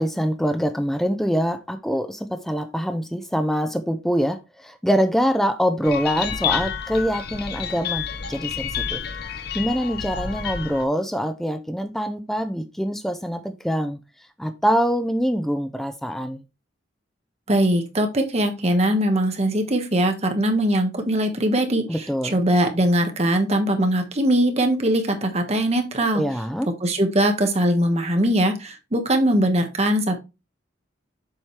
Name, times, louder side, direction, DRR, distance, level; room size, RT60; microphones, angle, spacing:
voice 1, 0.0-9.0 9.5-14.0 14.4-16.4 21.9-22.4 26.1-26.7, equal, ahead, 0.5 m, -24 dB
sound 1, 5.8-10.9, left 7 dB, 55° left, 0.8 m, -29 dB
voice 2, 17.5-21.8 22.3-26.2 26.8-30.2, right 1 dB, 35° right, 1.2 m, -21 dB
7.2 x 4.9 x 3.2 m
head